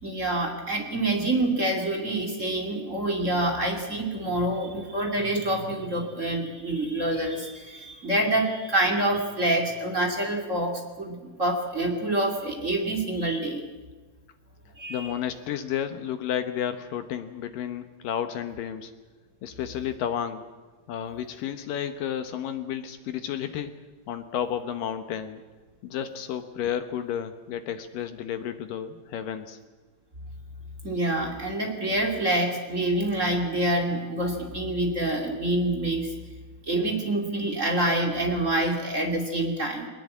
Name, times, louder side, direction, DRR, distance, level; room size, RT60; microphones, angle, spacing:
voice 1, 0.0-13.6 14.8-15.1 30.8-36.1 36.6-39.9, right 1 dB, 25° right, 3 dB, 2.0 m, -26 dB
voice 2, 14.9-18.9 19.4-20.4 20.9-23.7 24.1-25.4 25.8-29.6, left 9 dB, 75° left, 9 dB, 2.1 m, -32 dB
22.0 x 20.0 x 8.5 m, 1.3 s
omnidirectional pair, 5.2 m